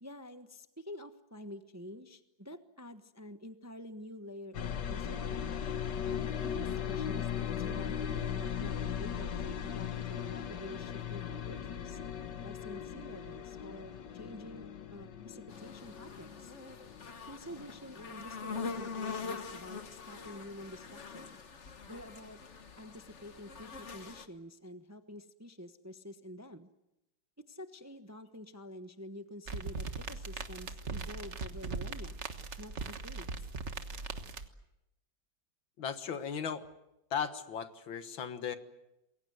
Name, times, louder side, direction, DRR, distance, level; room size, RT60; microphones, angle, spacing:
voice 1, 0.0-5.6 6.0-12.0 12.4-16.5 17.2-21.4 21.9-22.4 22.8-26.7 27.5-32.2 32.6-33.5, left 1 dB, 10° right, 8 dB, 0.8 m, -48 dB
sound 1, 4.5-20.3 20.6-21.4, left 8 dB, 65° left, 1.8 m, -39 dB
sound 2, 15.5-24.3, left 5 dB, 40° left, 1.4 m, -44 dB
sound 3, 29.5-34.5, right 4 dB, 40° right, 1.5 m, -40 dB
voice 2, 35.8-36.7 37.1-38.6, left 7 dB, 85° left, 9 dB, 2.3 m, -36 dB
28.0 x 22.0 x 8.0 m, 0.90 s
omnidirectional pair, 2.1 m